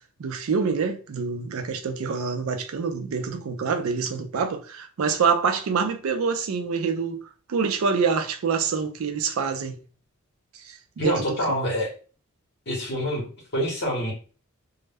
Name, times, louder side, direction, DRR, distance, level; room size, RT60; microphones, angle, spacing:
voice 1, 0.2-7.2 7.5-9.8 11.0-11.7, right 5 dB, 80° right, 0.4 m, -26 dB
voice 2, 11.0-11.9 12.7-13.3 13.5-14.1, equal, 55° left, 0.8 m, -26 dB
2.0 x 2.0 x 3.3 m
head